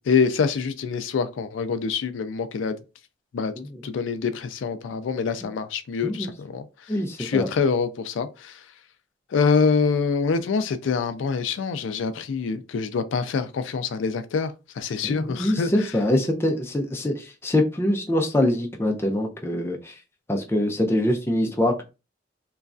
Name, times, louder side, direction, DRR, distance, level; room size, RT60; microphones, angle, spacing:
voice 1, 0.0-2.8 3.3-3.5 3.8-6.7 7.2-8.6 9.3-15.7, left 5 dB, 80° left, 0.3 m, -25 dB
voice 2, 6.9-7.5 15.0-20.0 20.3-21.8, left 1 dB, 15° left, 0.4 m, -24 dB
3.0 x 2.3 x 2.5 m
head